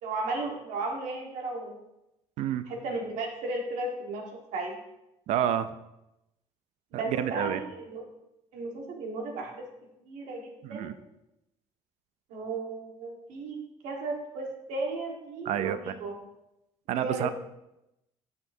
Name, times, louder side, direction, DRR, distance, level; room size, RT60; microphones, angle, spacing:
voice 1, 0.0-1.8 2.7-4.2 4.5-4.7 6.9-8.1 8.5-9.6 10.1-10.9 12.3-13.6 13.8-16.2 16.9-17.3, right 3 dB, 85° right, 0 dB, 1.5 m, -35 dB
voice 2, 5.3-5.7 7.0-7.6 10.6-10.9 15.5-15.9 16.9-17.3, right 10 dB, 65° right, 12 dB, 0.4 m, -29 dB
9.1 x 5.9 x 2.7 m, 0.90 s
cardioid pair, 165°, 12 cm